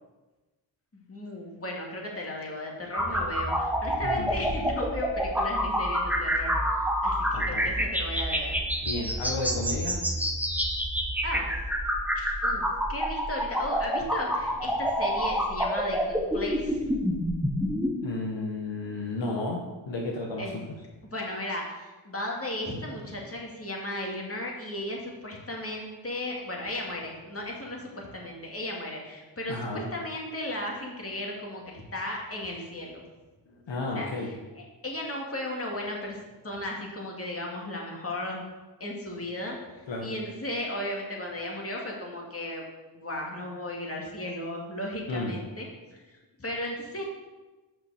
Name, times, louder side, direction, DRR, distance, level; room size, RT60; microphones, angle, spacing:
voice 1, 0.9-8.5 11.2-11.5 12.2-17.0 20.4-20.6 21.0-33.0 33.9-38.4 38.8-39.6 40.0-42.6 42.9-45.7 45.9-46.0 46.4-47.0, left 1 dB, 30° left, -1 dB, 2.3 m, -35 dB
sound 1, 2.9-17.9, equal, 5° right, 1.2 m, -28 dB
voice 2, 4.0-4.3 7.3-7.7 8.8-10.0 18.0-20.6 29.5-29.9 33.5-34.3 39.9-40.1 45.1-45.4, left 2 dB, 70° left, -1 dB, 1.2 m, -33 dB
6.1 x 5.4 x 6.4 m, 1.2 s
cardioid pair, 55°, 45 cm